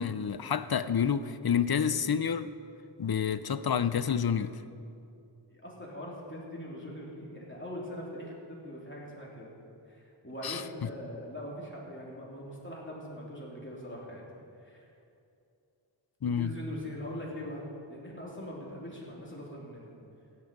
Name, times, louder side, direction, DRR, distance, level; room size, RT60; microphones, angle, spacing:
voice 1, 0.0-2.5 3.0-4.6 10.4-10.9 16.2-16.5, left 7 dB, 55° left, 14 dB, 0.6 m, -29 dB
voice 2, 5.5-9.5 9.9-14.3 14.6-14.9 16.3-19.9, equal, 25° left, -4 dB, 3.1 m, -42 dB
16.0 x 9.6 x 5.3 m, 2.6 s
wide cardioid pair, 45°, 46 cm